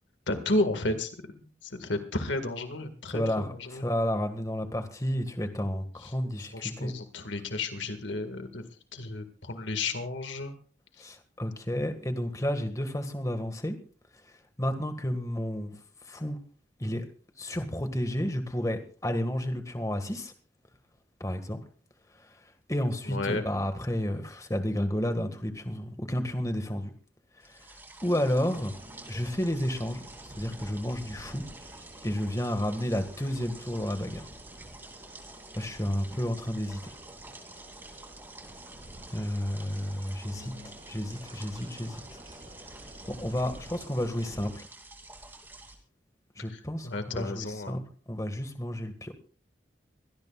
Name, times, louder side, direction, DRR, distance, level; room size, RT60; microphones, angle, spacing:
voice 1, 0.3-1.1 1.4-3.9 6.0-6.1 6.5-8.6 8.9-10.5 23.1-23.4 40.2-40.7 46.5-47.8, left 2 dB, 85° left, 7 dB, 1.9 m, -32 dB
voice 2, 3.1-7.0 11.0-13.8 14.6-15.8 16.0-16.4 16.8-17.0 17.4-20.3 21.2-21.6 22.7-26.9 27.4-27.7 28.0-28.7 29.1-31.4 32.0-34.3 35.5-36.8 39.1-40.5 40.9-42.0 43.1-44.7 46.3-47.8 48.1-49.1, equal, 20° left, 7 dB, 1.8 m, -31 dB
sound 1, 27.4-45.8, right 2 dB, 10° right, 2.7 m, -49 dB
sound 2, 28.0-44.5, right 1 dB, 30° right, 6.3 m, -50 dB
24.0 x 17.5 x 2.4 m, 0.40 s
head